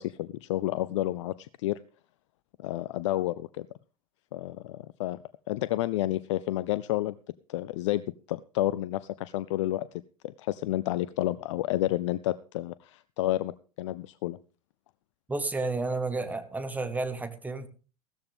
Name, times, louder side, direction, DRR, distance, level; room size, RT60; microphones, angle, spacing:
voice 1, 0.0-1.8 2.6-3.7 4.3-5.2 5.5-7.1 7.5-8.0 8.3-9.9 10.2-13.5 13.8-14.4, left 15 dB, 55° left, 16 dB, 0.5 m, -30 dB
voice 2, 15.3-17.7, right 3 dB, 10° right, 9 dB, 1.5 m, -31 dB
15.0 x 13.5 x 3.5 m, 0.37 s
figure-of-eight pair, 80°, 19 cm